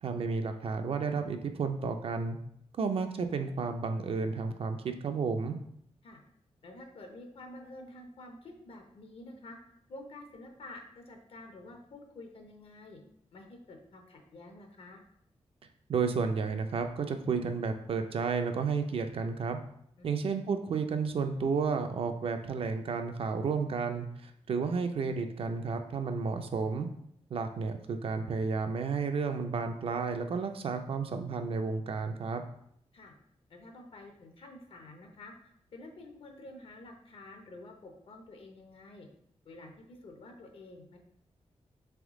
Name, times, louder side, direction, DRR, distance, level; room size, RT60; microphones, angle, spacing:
voice 1, 0.0-2.4 2.8-5.6 15.9-19.6 20.0-26.9 27.3-32.4, right 5 dB, 55° right, 6 dB, 0.4 m, -32 dB
voice 2, 6.6-9.6 9.9-13.0 13.3-15.0 20.0-20.2 32.9-33.1 33.5-35.3 35.7-39.1 39.4-41.0, left 2 dB, 55° left, 3 dB, 0.7 m, -49 dB
3.5 x 3.3 x 3.6 m, 0.70 s
wide cardioid pair, 155°, 11 cm